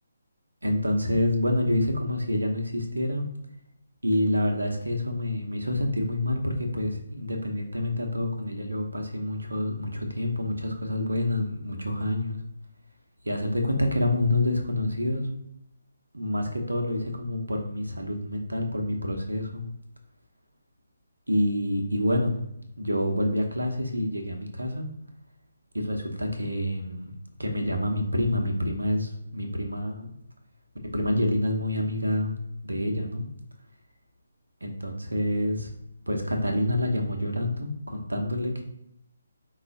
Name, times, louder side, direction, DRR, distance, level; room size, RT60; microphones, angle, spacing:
voice 1, 0.6-3.3 4.0-12.4 13.2-15.3 16.1-19.7 21.3-22.4 22.8-24.9 25.7-27.1 27.4-30.1 30.9-32.3 32.6-33.3 34.6-35.7 36.1-38.6, left 1 dB, 80° right, 3 dB, 0.8 m, -27 dB
4.7 x 2.4 x 3.9 m, 0.80 s
figure-of-eight pair, 145°, 0 cm